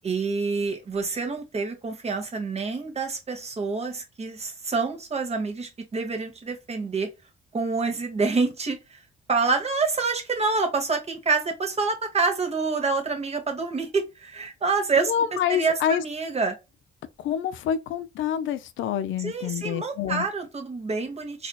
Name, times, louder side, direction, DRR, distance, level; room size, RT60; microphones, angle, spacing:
voice 1, 0.0-7.1 7.5-9.0 9.3-15.1 15.5-16.6 19.2-21.5, right 4 dB, 30° right, 1.2 m, -27 dB
voice 2, 15.0-16.0 17.2-20.3, left 9 dB, 75° left, 0.5 m, -27 dB
4.1 x 2.7 x 2.3 m
cardioid pair, 90°, 20 cm